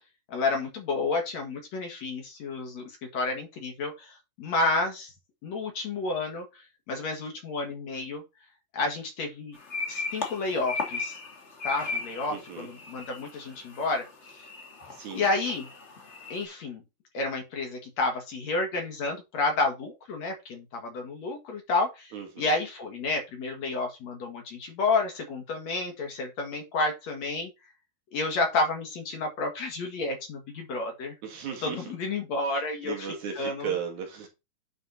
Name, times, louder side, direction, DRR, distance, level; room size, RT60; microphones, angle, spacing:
voice 1, 0.3-5.1 5.4-8.2 8.7-9.6 9.9-11.2 11.6-14.1 14.4-14.5 15.1-15.7 16.3-16.8 17.1-27.5 28.1-31.2 31.6-33.1 33.4-33.7, left 3 dB, 55° left, 2.7 m, -30 dB
sound 1, 9.5-16.5, left 4 dB, 35° left, 1.2 m, -37 dB
voice 2, 12.3-12.7 14.9-15.3 22.1-22.5 31.2-31.8 32.5-34.3, right 7 dB, 60° right, 2.7 m, -36 dB
9.6 x 4.4 x 4.2 m
omnidirectional pair, 4.1 m